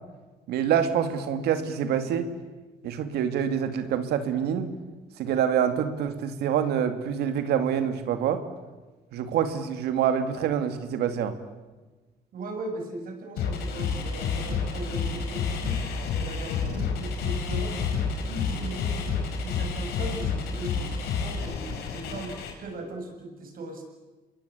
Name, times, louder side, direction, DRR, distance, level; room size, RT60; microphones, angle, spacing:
voice 1, 0.5-2.3 2.8-4.7 5.2-8.4 9.1-11.3, right 8 dB, 90° right, 8 dB, 2.6 m, -26 dB
voice 2, 12.3-15.8 16.1-17.8 18.2-19.1 19.4-23.8, right 2 dB, 65° right, 3 dB, 7.4 m, -38 dB
sound 1, 13.4-22.5, left 5 dB, 90° left, 5.1 m, -29 dB
29.0 x 22.0 x 8.6 m, 1.2 s
cardioid pair, 110°, 16 cm